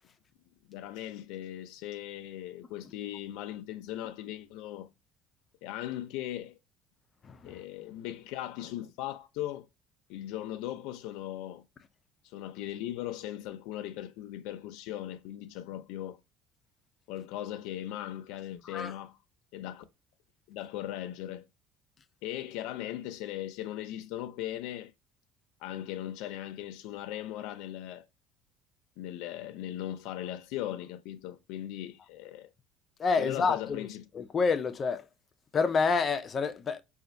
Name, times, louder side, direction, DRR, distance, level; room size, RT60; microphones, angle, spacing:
voice 1, 0.7-4.9 5.6-6.6 7.4-9.7 10.1-11.6 12.2-16.2 17.1-19.2 19.5-19.8 20.5-21.4 22.2-24.9 25.6-28.1 29.0-32.5 33.2-34.1, left 13 dB, 80° left, 0.5 m, -38 dB
voice 2, 7.2-7.6 18.6-18.9 33.0-33.9 34.1-35.1 35.5-36.8, left 5 dB, 25° left, 0.4 m, -28 dB
5.0 x 2.5 x 2.6 m
cardioid pair, 160°, 0 cm